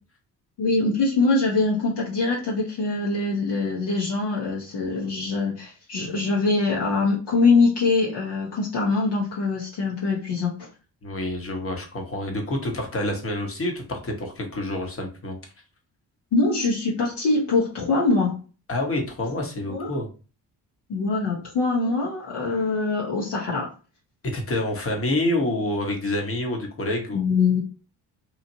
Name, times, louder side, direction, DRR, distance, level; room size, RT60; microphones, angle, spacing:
voice 1, 0.6-10.7 16.3-18.4 19.7-19.9 20.9-23.7 27.1-27.6, left 3 dB, 55° left, -4 dB, 1.0 m, -23 dB
voice 2, 11.0-15.4 18.7-20.1 24.3-27.2, left 1 dB, 25° left, 2 dB, 1.1 m, -27 dB
3.0 x 2.4 x 2.7 m, 0.35 s
hypercardioid pair, 40°, 50 cm